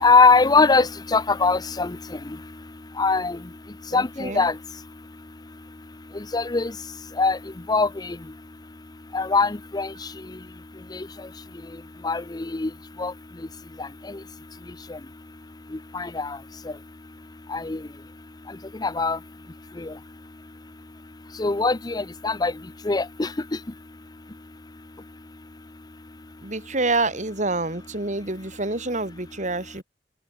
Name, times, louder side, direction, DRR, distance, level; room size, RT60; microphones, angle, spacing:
voice 1, 0.0-2.0 3.0-3.4 3.9-4.5 6.3-6.7 7.2-7.4 7.7-8.2 9.1-9.9 10.9-11.0 12.0-12.7 13.0-13.1 13.8-13.9 15.9-16.4 17.5-17.8 18.8-19.2 19.8-19.9 21.4-22.5 22.9-23.3, left 4 dB, 25° left, 0.6 m, -21 dB
voice 2, 3.9-4.5 26.4-29.8, right 3 dB, 45° right, 3.7 m, -27 dB
open air
head